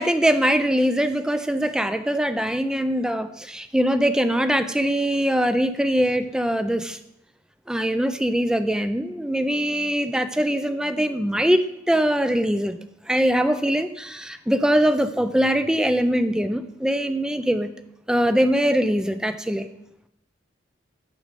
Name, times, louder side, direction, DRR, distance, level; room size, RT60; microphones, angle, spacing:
voice 1, 0.0-7.0 7.7-12.8 13.1-17.7 18.1-19.7, equal, 5° right, 10 dB, 0.3 m, -22 dB
6.3 x 5.0 x 5.2 m, 0.80 s
head